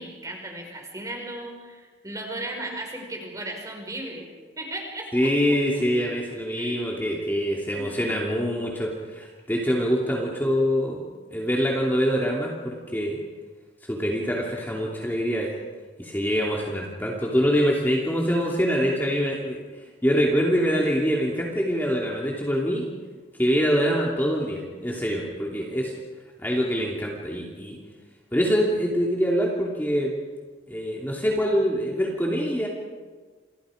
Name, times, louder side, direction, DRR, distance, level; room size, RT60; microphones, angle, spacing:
voice 1, 0.0-4.3 4.6-5.3 5.8-5.9 6.5-6.8 7.1-7.4 7.7-7.9, right 1 dB, 20° right, 1 dB, 5.8 m, -36 dB
voice 2, 5.1-11.0 11.3-13.2 13.8-15.6 16.0-22.9 23.4-25.9 26.4-27.8 28.3-30.1 30.7-32.7, equal, 10° left, -2 dB, 2.9 m, -24 dB
29.5 x 28.0 x 5.2 m, 1.5 s
head